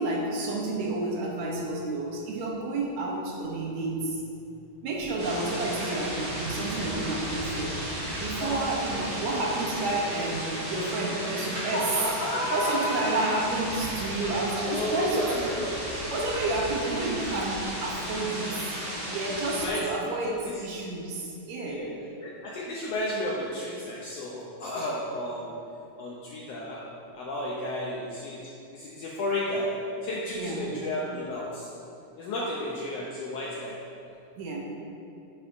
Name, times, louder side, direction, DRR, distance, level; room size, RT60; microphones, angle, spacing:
voice 1, 0.0-4.2 4.8-7.7 8.2-11.9 12.5-15.6 16.1-18.6 19.1-21.9 30.3-30.6 34.4-34.6, right 2 dB, 70° right, -2 dB, 2.0 m, -30 dB
sound 1, 5.2-19.7, equal, 40° right, 2.1 m, -34 dB
voice 2, 11.7-13.2 14.7-15.8 19.5-19.9 20.4-20.6 21.6-21.9 22.2-25.6 26.0-26.8 27.1-29.7 30.0-31.7 32.2-33.8, left 1 dB, 80° left, -4 dB, 1.5 m, -32 dB
10.0 x 6.5 x 2.6 m, 2.7 s
omnidirectional pair, 3.6 m